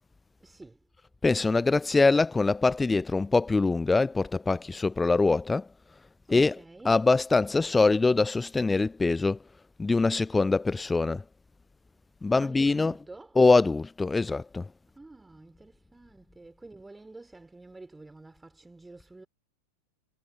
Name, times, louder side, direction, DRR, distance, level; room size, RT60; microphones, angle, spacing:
voice 1, 0.4-0.9 6.3-7.1 12.3-13.5 14.9-19.3, right 2 dB, 10° right, 3.7 m, -49 dB
voice 2, 1.2-5.7 6.3-9.4 9.8-11.2 12.2-13.0 13.3-14.7, left 3 dB, 10° left, 0.4 m, -23 dB
figure-of-eight pair, 90°, 0 cm